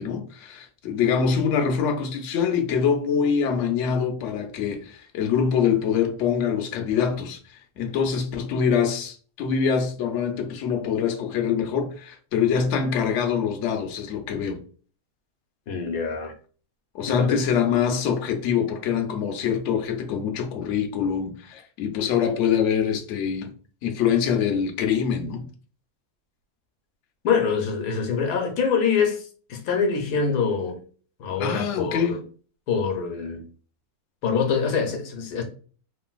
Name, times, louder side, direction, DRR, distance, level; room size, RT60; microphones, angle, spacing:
voice 1, 0.0-14.6 16.9-23.5 23.8-25.5 31.4-32.2, left 7 dB, 65° left, 0.8 m, -24 dB
voice 2, 15.7-16.3 17.1-17.4 27.2-30.8 31.2-32.2 32.7-33.4 34.2-35.4, left 6 dB, 80° left, 1.2 m, -25 dB
3.2 x 2.5 x 2.3 m
omnidirectional pair, 1.6 m